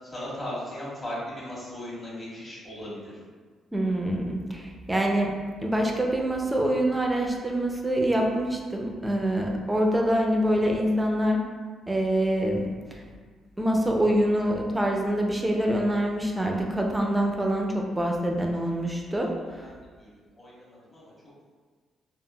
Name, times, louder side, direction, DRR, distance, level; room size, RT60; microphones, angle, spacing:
voice 1, 0.0-3.2 19.6-19.7 20.0-21.1, left 1 dB, 25° left, -8 dB, 1.3 m, -37 dB
voice 2, 3.7-11.4 11.9-13.0 13.6-19.7, right 1 dB, 10° right, 0 dB, 0.4 m, -25 dB
3.5 x 2.0 x 2.2 m, 1.5 s
cardioid pair, 90°, 0 cm